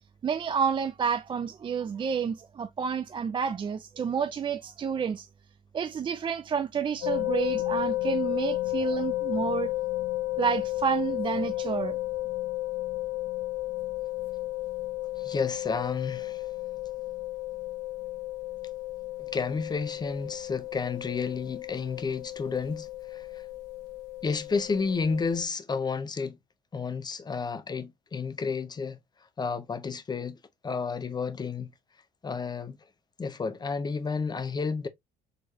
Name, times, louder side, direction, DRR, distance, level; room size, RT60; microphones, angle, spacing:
voice 1, 0.2-5.3 5.7-9.7 10.4-12.0, right 7 dB, 30° right, 0.4 m, -29 dB
sound 1, 7.0-25.4, left 17 dB, 80° left, 1.1 m, -33 dB
voice 2, 15.2-16.5 19.2-23.4 24.2-26.4 26.7-29.0 29.4-30.4 30.6-31.7 32.2-32.8 33.2-34.9, left 5 dB, 25° left, 0.7 m, -31 dB
4.5 x 3.2 x 2.8 m
cardioid pair, 110°, 17 cm